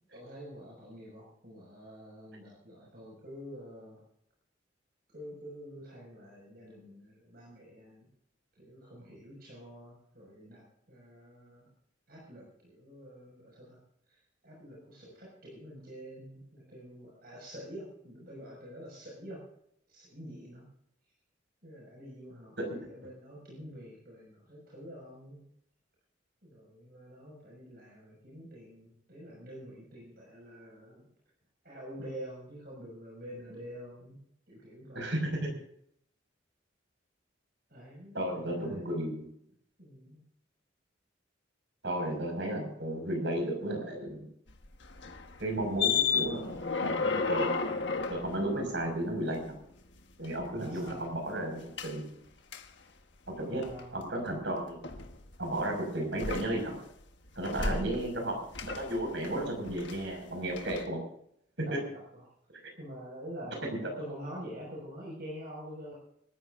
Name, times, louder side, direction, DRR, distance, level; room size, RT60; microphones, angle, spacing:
voice 1, 0.1-4.0 5.1-8.1 8.5-11.7 12.1-13.8 14.1-14.2 14.4-19.5 19.9-20.7 21.6-25.4 26.4-31.1 31.6-34.2 34.5-35.3 37.7-39.1 39.8-40.2 50.5-51.0 53.3-54.0 61.7-62.2 62.8-65.9, equal, 55° right, -4 dB, 6.1 m, -47 dB
voice 2, 34.9-35.5 38.1-39.3 41.8-44.3 45.4-47.5 48.1-49.5 50.2-52.1 53.4-53.6 53.9-54.8 55.4-56.8 57.4-58.4 58.6-61.0 61.6-61.8, right 1 dB, 70° right, 3 dB, 5.9 m, -33 dB
sound 1, 44.5-49.6 49.9-51.1 51.8-51.9 52.5-52.6 53.3-53.8 54.8-55.6 56.1-56.9 57.3-58.3 58.5-60.2 60.5-60.8, left 5 dB, 70° left, 1.4 m, -34 dB
25.5 x 14.0 x 2.6 m, 0.72 s
head